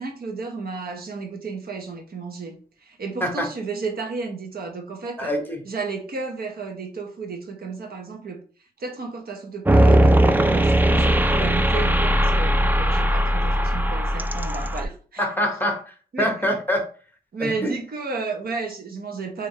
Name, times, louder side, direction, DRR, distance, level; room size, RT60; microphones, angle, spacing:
voice 1, 0.0-5.3 5.6-8.4 8.8-15.3 16.1-16.3 17.3-19.5, right 4 dB, 65° right, 1.0 m, -33 dB
voice 2, 5.2-5.6 15.2-16.9 17.4-17.7, equal, 10° left, 1.0 m, -25 dB
sound 1, 9.7-14.8, right 1 dB, 10° right, 0.3 m, -19 dB
3.5 x 3.4 x 3.2 m
wide cardioid pair, 125°, 17 cm